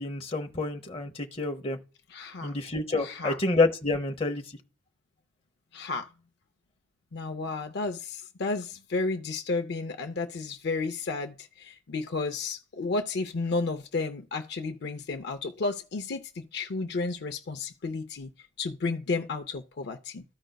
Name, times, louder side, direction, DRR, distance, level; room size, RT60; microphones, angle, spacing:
voice 1, 0.0-1.8 2.4-4.4, left 3 dB, 30° left, 0.9 m, -28 dB
voice 2, 2.1-2.5 3.0-3.4 5.7-6.1 7.1-18.3 18.6-20.2, left 3 dB, 60° left, 0.5 m, -32 dB
14.0 x 5.1 x 2.2 m
head